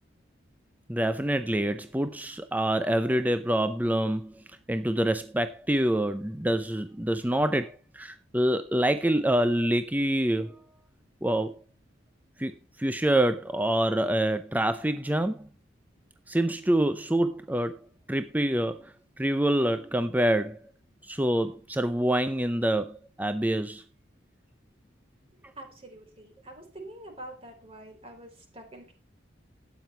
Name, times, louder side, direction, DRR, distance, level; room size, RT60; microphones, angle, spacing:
voice 1, 0.9-4.3 4.7-10.6 11.2-11.5 12.4-15.5 16.3-17.8 18.1-20.6 21.0-23.8, right 1 dB, 10° right, 0.6 m, -26 dB
voice 2, 25.6-28.9, right 1 dB, 30° right, 4.4 m, -46 dB
12.5 x 9.3 x 4.5 m
head